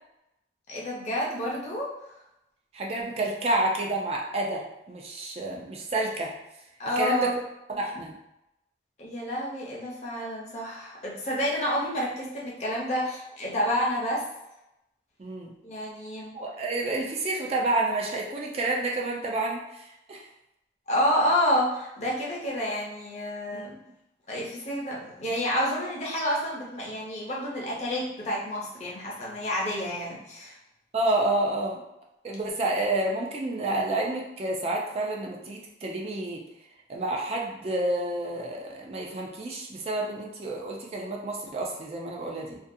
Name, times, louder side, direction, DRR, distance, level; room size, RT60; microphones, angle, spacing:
voice 1, 0.7-1.9 6.8-7.3 9.0-14.2 15.6-16.3 20.9-23.7 24.3-30.6, equal, 40° left, -4 dB, 0.6 m, -29 dB
voice 2, 2.7-6.3 7.0-7.3 7.7-8.2 15.2-15.5 16.3-20.2 23.5-23.7 30.9-31.8 32.2-36.4 36.9-42.6, right 2 dB, 35° right, -1 dB, 0.3 m, -29 dB
2.5 x 2.3 x 2.6 m, 0.87 s
head